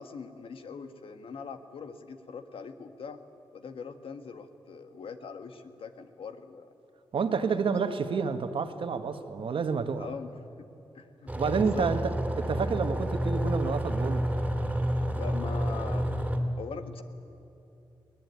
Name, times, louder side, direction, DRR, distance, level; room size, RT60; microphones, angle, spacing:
voice 1, 0.0-3.2 3.5-6.7 7.4-7.5 7.8-7.9 10.0-10.3 10.6-10.7 10.9-11.9 15.1-16.1 16.6-17.0, left 5 dB, 80° left, 8 dB, 1.6 m, -42 dB
voice 2, 7.1-10.1 11.3-12.1 12.4-14.3, right 5 dB, 75° right, 8 dB, 1.5 m, -29 dB
sound 1, 11.3-16.4, equal, 15° right, 2.9 m, -29 dB
23.0 x 18.0 x 9.6 m, 2.9 s
cardioid pair, 85°, 9 cm